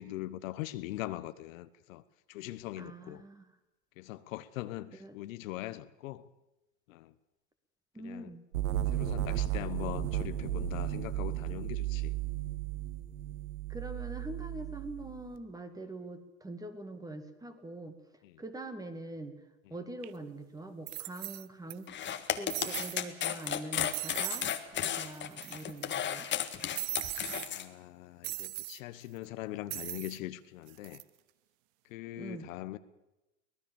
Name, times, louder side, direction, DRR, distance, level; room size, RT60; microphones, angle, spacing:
voice 1, 0.0-2.0 2.3-3.2 4.0-6.3 6.9-7.1 8.0-8.3 8.9-12.2 18.2-18.4 25.0-25.1 27.5-31.0 31.9-32.8, left 16 dB, 65° left, 1.2 m, -41 dB
voice 2, 2.8-3.5 5.0-5.2 7.9-8.5 13.7-17.9 18.4-19.4 19.7-21.9 22.4-26.3 32.2-32.5, right 2 dB, 10° right, 2.2 m, -44 dB
sound 1, 8.5-15.3, right 12 dB, 80° right, 1.5 m, -34 dB
sound 2, 20.0-20.1 20.9-21.7 22.0-22.1 22.5-23.0 23.4-23.6 23.9-24.5 24.8-24.9 25.1-25.8 26.7-27.5 28.2-28.8 29.7-30.2 30.7-31.0, right 20 dB, 50° right, 0.9 m, -39 dB
sound 3, 21.9-27.6, left 9 dB, 25° left, 1.7 m, -34 dB
24.0 x 18.5 x 7.1 m
hypercardioid pair, 120°, 42 cm